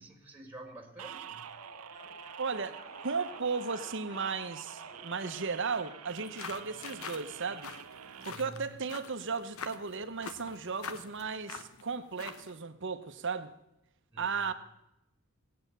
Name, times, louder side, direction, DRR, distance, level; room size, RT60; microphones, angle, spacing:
voice 1, 0.0-1.5 8.2-8.7 14.1-14.5, right 2 dB, 10° right, 2.0 m, -49 dB
sound 1, 1.0-8.3, right 8 dB, 75° right, 0.7 m, -47 dB
sound 2, 1.4-7.5, equal, 35° left, 6.2 m, -54 dB
voice 2, 2.4-7.7 8.3-13.5 14.2-14.5, right 5 dB, 55° right, 1.0 m, -35 dB
sound 3, 6.1-12.6, left 5 dB, 70° left, 0.9 m, -46 dB
18.5 x 8.8 x 6.8 m
head